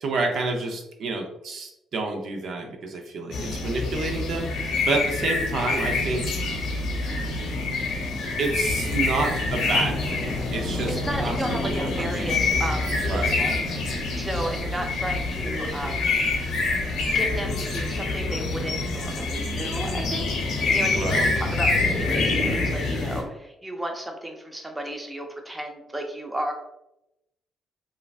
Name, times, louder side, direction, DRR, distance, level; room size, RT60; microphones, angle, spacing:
voice 1, 0.0-6.2 8.4-10.9 11.2-11.4 11.6-12.6 13.0-13.5 20.9-21.3, right 3 dB, 65° right, 3 dB, 0.5 m, -29 dB
sound 1, 3.3-23.2, left 3 dB, 75° left, 0.7 m, -26 dB
voice 2, 10.9-16.2 17.1-26.5, right 1 dB, 10° right, 2 dB, 0.5 m, -33 dB
3.1 x 2.4 x 2.3 m, 0.85 s
cardioid pair, 90°, 0 cm